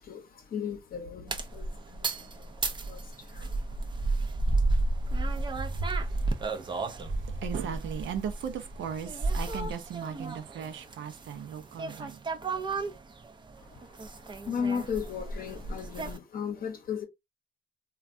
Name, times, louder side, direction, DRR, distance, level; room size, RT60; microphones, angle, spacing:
voice 1, 0.0-3.5 13.6-14.1 14.4-17.0, left 7 dB, 45° left, 0.8 m, -36 dB
sound 1, 1.3-16.2, right 2 dB, 25° right, 0.5 m, -33 dB
voice 2, 5.0-12.2, right 8 dB, 70° right, 0.6 m, -38 dB
3.2 x 2.3 x 2.5 m
cardioid pair, 90°, 20 cm